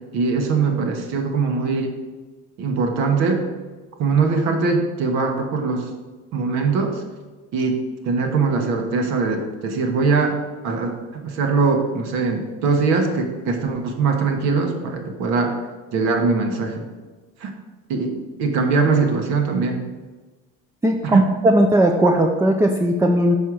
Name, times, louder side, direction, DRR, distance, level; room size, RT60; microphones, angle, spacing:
voice 1, 0.1-1.9 2.6-3.4 4.0-5.8 6.3-7.0 7.5-10.4 10.6-15.6 15.9-16.9 17.4-17.5 17.9-18.1 18.4-19.8 21.0-21.2, right 4 dB, 65° right, 4 dB, 1.3 m, -21 dB
voice 2, 20.8-23.4, right 1 dB, 10° right, 2 dB, 0.4 m, -17 dB
5.6 x 4.5 x 6.3 m, 1.3 s
supercardioid pair, 120°, 29 cm